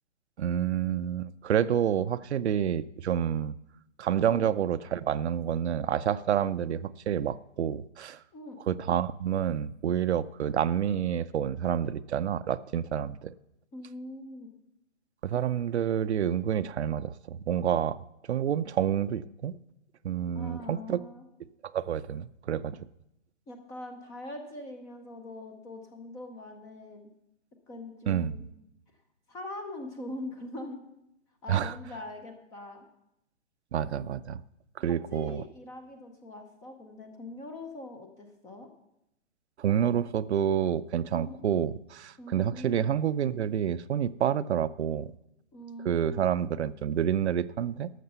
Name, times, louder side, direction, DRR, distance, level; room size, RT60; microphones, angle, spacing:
voice 1, 0.4-3.5 4.0-8.2 8.7-13.3 15.2-18.0 18.3-19.6 20.0-21.0 21.7-22.8 28.1-28.3 31.5-31.7 33.7-34.4 34.8-35.4 39.6-45.1 45.8-47.9, right 9 dB, 60° right, 14 dB, 0.6 m, -28 dB
voice 2, 13.7-14.5 20.3-21.2 23.5-27.1 27.7-28.4 29.3-30.8 31.4-32.9 35.1-38.7 41.1-41.4 42.2-42.9 45.5-46.2, left 1 dB, 10° left, 6 dB, 0.5 m, -42 dB
12.5 x 6.6 x 6.8 m, 0.84 s
hypercardioid pair, 135°, 37 cm